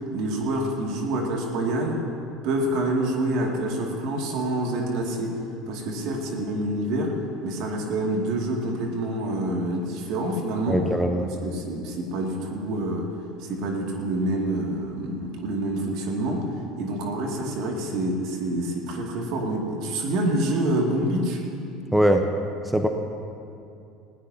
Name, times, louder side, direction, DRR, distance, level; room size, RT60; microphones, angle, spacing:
voice 1, 0.1-2.0 2.4-5.3 5.7-7.2 7.4-10.8 11.4-13.1 13.4-16.5 16.8-21.4, right 1 dB, 60° right, 0 dB, 2.5 m, -27 dB
voice 2, 10.7-11.3 21.9-22.3 22.6-22.9, equal, 5° right, 5 dB, 1.0 m, -21 dB
19.5 x 16.5 x 2.9 m, 2.6 s
hypercardioid pair, 75°, 0 cm